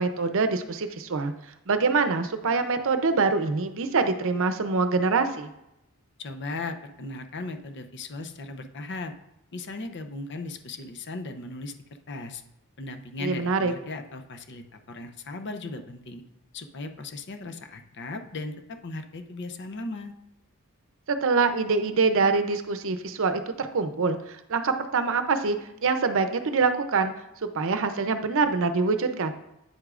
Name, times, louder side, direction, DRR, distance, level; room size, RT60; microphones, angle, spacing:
voice 1, 0.0-1.3 1.7-5.5 13.2-13.7 21.1-25.6 25.8-27.1 27.5-29.3, right 4 dB, 60° right, 8 dB, 0.6 m, -25 dB
voice 2, 6.2-9.1 9.5-11.7 12.1-12.4 12.8-16.2 16.5-20.1, left 2 dB, 55° left, 7 dB, 0.6 m, -37 dB
8.8 x 8.0 x 2.5 m, 0.85 s
head